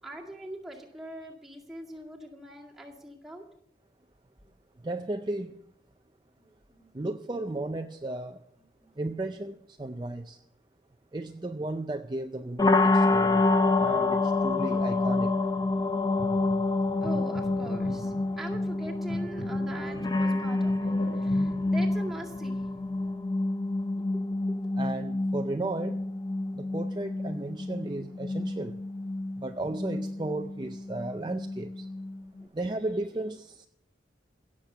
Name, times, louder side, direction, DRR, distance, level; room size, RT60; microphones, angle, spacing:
voice 1, 0.0-3.4 6.3-6.9 8.8-8.9 17.0-22.7 23.9-24.6 28.0-28.1 32.4-32.5, right 1 dB, ahead, 2.1 m, -42 dB
voice 2, 4.8-5.6 6.9-8.4 9.0-10.4 11.1-13.4 13.8-15.3 24.8-26.0 26.5-28.8 29.4-31.9 32.5-33.7, right 2 dB, 25° right, 0.4 m, -34 dB
sound 1, 12.6-32.4, left 2 dB, 20° left, 0.6 m, -28 dB
sound 2, 13.0-23.1, equal, 75° left, 3.6 m, -44 dB
16.5 x 7.4 x 6.8 m
head